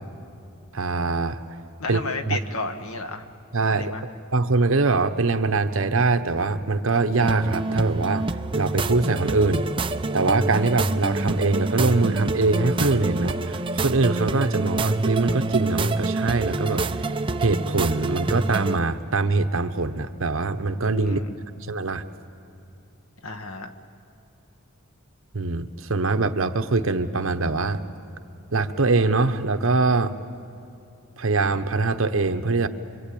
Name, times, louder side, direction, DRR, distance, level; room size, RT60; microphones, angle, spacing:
voice 1, 0.7-1.4 1.9-2.0 2.3-2.4 3.5-4.0 4.3-8.3 8.5-9.6 10.1-17.1 17.4-21.2 21.7-22.0 25.3-27.8 28.5-30.1 31.2-32.7, right 3 dB, 65° right, 9 dB, 1.0 m, -23 dB
voice 2, 1.8-3.2 3.6-4.0 21.0-21.4 23.2-23.7, left 3 dB, 80° left, 7 dB, 1.5 m, -32 dB
sound 1, 7.2-18.8, right 2 dB, 25° right, 0.6 m, -26 dB
25.0 x 24.0 x 8.6 m, 2.8 s
head